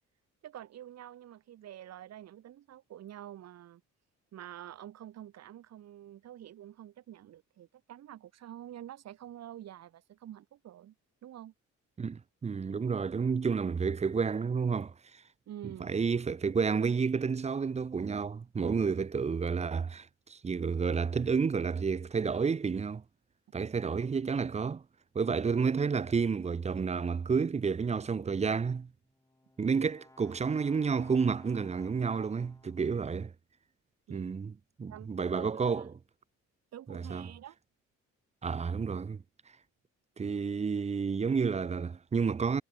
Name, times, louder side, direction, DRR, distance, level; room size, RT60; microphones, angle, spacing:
voice 1, 0.4-3.8 4.3-10.9 11.2-11.5 15.5-15.9 34.1-34.3 34.9-35.9 36.7-37.6, right 12 dB, 60° right, 1.0 m, -48 dB
voice 2, 12.0-14.9 15.8-23.0 23.5-24.8 25.1-28.9 29.6-33.3 34.1-34.5 34.8-35.9 36.9-37.3 38.4-39.2 40.2-42.6, right 5 dB, 20° right, 0.5 m, -30 dB
Brass instrument, 28.9-33.1, left 2 dB, 10° left, 3.3 m, -60 dB
cardioid pair, 90°, 30 cm